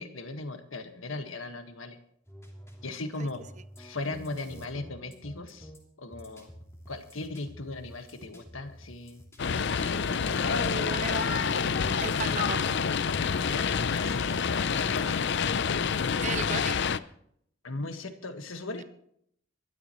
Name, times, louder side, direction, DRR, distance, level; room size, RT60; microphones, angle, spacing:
voice 1, 0.0-2.0 2.8-3.4 3.8-5.7 6.0-6.5 6.9-9.2 9.5-11.2 13.5-15.8 17.6-18.8, left 2 dB, 80° left, 7 dB, 1.6 m, -38 dB
sound 1, 2.3-14.8, equal, 15° left, 3.1 m, -51 dB
sound 2, 9.4-17.0, left 6 dB, 60° left, 0.6 m, -27 dB
voice 2, 10.4-11.7 12.0-12.8 16.2-16.8, right 6 dB, 35° right, 15 dB, 0.6 m, -36 dB
22.5 x 13.0 x 3.1 m, 0.68 s
head